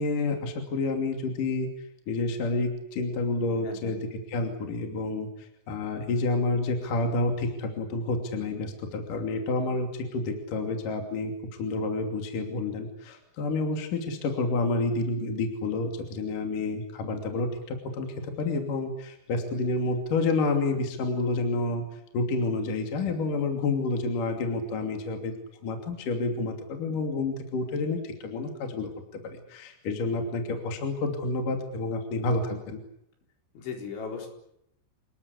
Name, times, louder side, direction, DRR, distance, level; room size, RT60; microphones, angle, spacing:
voice 1, 0.0-1.7 2.1-11.3 11.6-25.3 25.6-28.9 29.2-32.8, left 3 dB, 45° left, 4 dB, 3.9 m, -29 dB
voice 2, 3.5-4.0 33.5-34.3, left 5 dB, 65° left, 3 dB, 6.6 m, -37 dB
28.0 x 21.0 x 8.4 m, 0.76 s
omnidirectional pair, 5.8 m